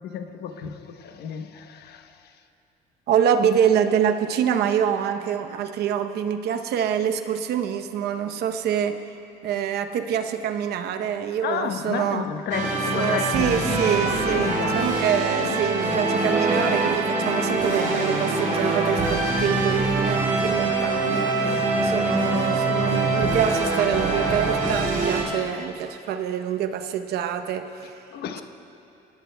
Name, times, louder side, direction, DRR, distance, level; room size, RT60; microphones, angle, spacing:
voice 1, 0.0-2.4 11.4-14.9 27.8-28.4, left 7 dB, 70° left, 7 dB, 1.1 m, -32 dB
voice 2, 3.1-9.0 9.4-12.3 12.9-28.0, right 8 dB, 70° right, 8 dB, 0.9 m, -25 dB
sound 1, 12.5-25.2, right 3 dB, 50° right, 3.4 m, -24 dB
26.5 x 18.5 x 2.3 m, 2.7 s
cardioid pair, 110°, 17 cm